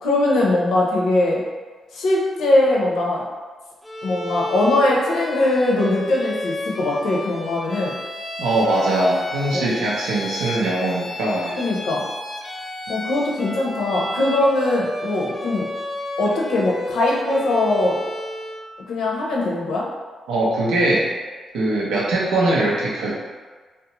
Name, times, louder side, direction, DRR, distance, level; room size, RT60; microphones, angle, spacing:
voice 1, 0.0-1.4 1.9-3.2 4.0-7.9 9.5-9.7 11.6-12.0 12.9-15.7 16.2-18.0 18.9-19.9, left 2 dB, 80° left, -3 dB, 0.6 m, -21 dB
Bowed string instrument, 3.8-18.7, left 1 dB, 15° left, 0.5 m, -32 dB
voice 2, 8.4-11.6 20.3-21.1 21.5-23.1, right 1 dB, 90° right, -4 dB, 0.6 m, -21 dB
2.6 x 2.0 x 2.9 m, 1.4 s
supercardioid pair, 55°, 0 cm